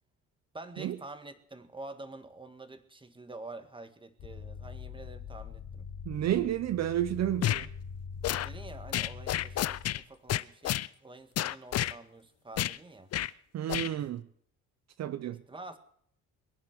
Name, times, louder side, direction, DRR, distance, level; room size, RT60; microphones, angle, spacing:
voice 1, 0.5-5.9 8.4-13.1 14.0-14.1 15.5-15.8, right 2 dB, 15° right, 1.7 m, -47 dB
sound 1, 4.2-10.0, left 6 dB, 70° left, 2.1 m, -43 dB
voice 2, 6.0-7.7 13.5-14.3 15.0-15.4, right 12 dB, 60° right, 0.7 m, -31 dB
sound 2, 7.4-7.7 8.2-8.5 8.9-10.0 10.3-10.9 11.4-11.9 12.6-12.8 13.1-13.3 13.7-13.9, left 13 dB, 55° left, 0.5 m, -30 dB
22.5 x 10.0 x 6.1 m
cardioid pair, 90°, 30 cm